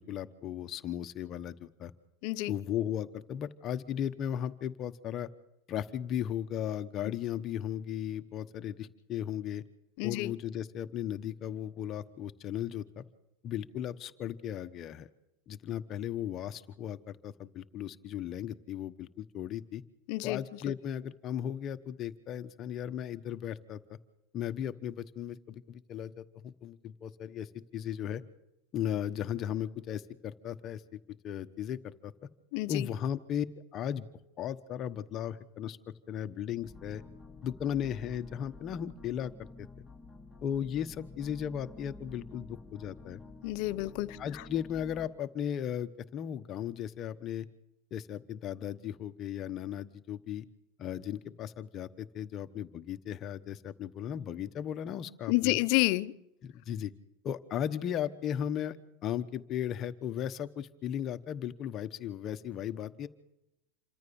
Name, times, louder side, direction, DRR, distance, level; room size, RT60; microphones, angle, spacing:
voice 1, 0.0-1.9 2.5-5.3 5.7-9.6 10.0-13.0 13.4-15.1 15.5-19.8 20.2-24.0 24.3-28.2 28.7-32.1 32.7-34.1 34.4-35.8 36.1-37.0 37.4-39.7 40.4-43.2 44.2-47.5 47.9-50.5 50.8-55.6 56.4-56.9 57.2-58.8 59.0-63.1, left 9 dB, 35° left, 1.1 m, -36 dB
voice 2, 10.0-10.3 20.1-20.4 32.5-32.9 43.4-44.2 55.3-56.1, left 21 dB, 60° left, 0.8 m, -29 dB
sound 1, 36.6-45.1, left 3 dB, 5° right, 3.0 m, -50 dB
27.5 x 14.0 x 7.1 m
supercardioid pair, 130°, 0 cm